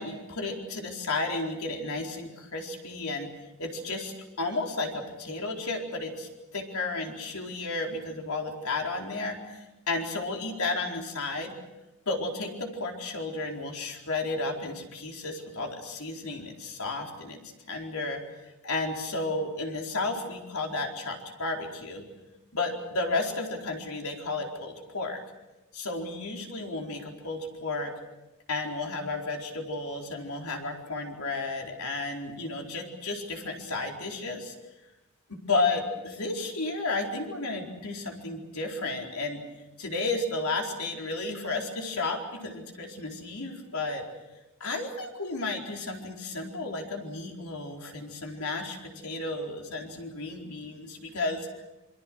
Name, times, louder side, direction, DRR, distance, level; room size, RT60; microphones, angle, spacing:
voice 1, 0.0-3.3 3.6-11.5 12.1-17.4 17.7-18.2 18.6-22.0 22.5-25.2 25.7-27.9 28.5-34.5 35.3-39.4 39.8-44.1 44.6-51.6, left 3 dB, 80° left, 1 dB, 4.4 m, -33 dB
27.0 x 23.5 x 6.3 m, 1.0 s
head